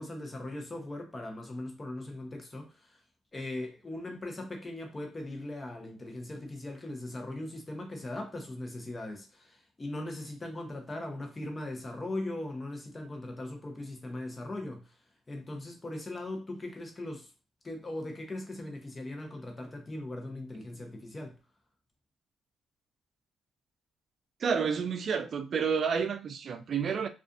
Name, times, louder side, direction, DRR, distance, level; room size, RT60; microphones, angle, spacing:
voice 1, 0.0-3.0 3.3-14.9 15.3-17.3 17.6-21.4, left 1 dB, 25° left, 0.7 m, -39 dB
voice 2, 24.4-27.1, right 6 dB, 55° right, 0.3 m, -30 dB
2.4 x 2.4 x 2.4 m
cardioid pair, 90°, 0 cm